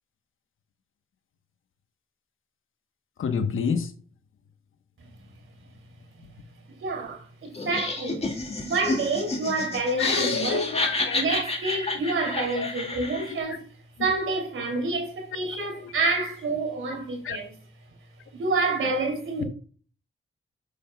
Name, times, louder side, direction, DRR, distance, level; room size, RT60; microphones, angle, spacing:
voice 1, 3.2-3.9 10.0-11.2 13.2-13.3 17.2-17.4, left 6 dB, 80° left, 1.0 m, -28 dB
voice 2, 6.8-8.2 8.6-10.6 11.1-13.6 14.0-17.5 18.3-19.4, right 3 dB, 85° right, 2.9 m, -28 dB
Laughter, 7.5-13.4, left 2 dB, 30° left, 2.1 m, -30 dB
8.3 x 7.3 x 2.3 m
cardioid pair, 70°, 21 cm